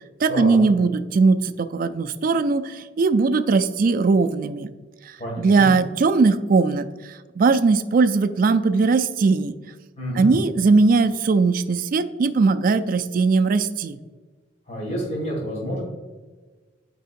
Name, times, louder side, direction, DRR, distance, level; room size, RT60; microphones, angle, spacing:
voice 1, 0.2-4.7 5.1-9.5 10.1-14.0, right 4 dB, 45° right, 11 dB, 0.3 m, -19 dB
voice 2, 5.2-5.7 10.0-10.3 14.7-15.8, equal, 35° left, -4 dB, 1.9 m, -28 dB
9.1 x 4.7 x 2.5 m, 1.3 s
head